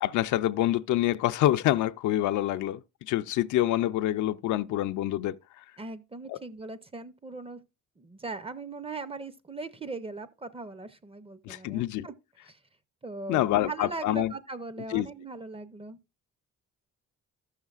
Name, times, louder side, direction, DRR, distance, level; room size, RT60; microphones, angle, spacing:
voice 1, 0.0-2.8 3.1-5.4 6.3-6.4 11.5-12.1 13.3-14.3 14.9-15.1, left 14 dB, 70° left, 0.5 m, -26 dB
voice 2, 5.8-7.6 8.0-12.1 12.5-12.6 13.0-16.0, right 3 dB, 20° right, 0.5 m, -39 dB
13.5 x 6.5 x 2.4 m
cardioid pair, 80°, 31 cm